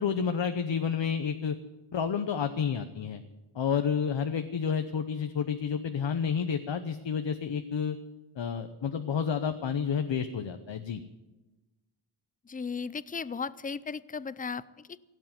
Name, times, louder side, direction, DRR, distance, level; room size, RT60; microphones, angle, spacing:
voice 1, 0.0-1.6 1.9-3.2 3.5-8.0 8.4-11.0, left 7 dB, 60° left, 8 dB, 0.9 m, -30 dB
voice 2, 12.4-15.0, left 5 dB, 20° left, 18 dB, 0.4 m, -36 dB
17.0 x 8.4 x 9.3 m, 1.1 s
wide cardioid pair, 100°, 50 cm